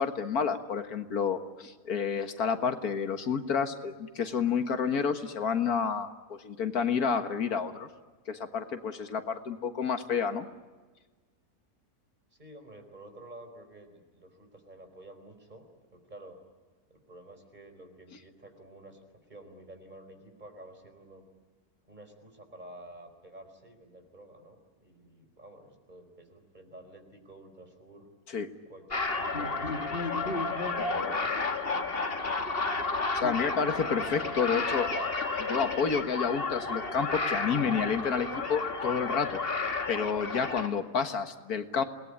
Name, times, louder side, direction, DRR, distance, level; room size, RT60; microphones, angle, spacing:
voice 1, 0.0-7.9 8.3-10.5 28.3-28.5 33.1-34.9 35.4-39.4 39.9-41.8, left 6 dB, 80° left, 7 dB, 2.0 m, -30 dB
voice 2, 12.4-16.4 16.9-21.2 21.9-28.1 28.7-32.6 34.0-34.9, right 1 dB, 30° right, 5 dB, 4.7 m, -51 dB
sound 1, 28.9-40.7, left 3 dB, 40° left, 2.0 m, -31 dB
28.5 x 20.0 x 9.9 m, 1.4 s
omnidirectional pair, 1.6 m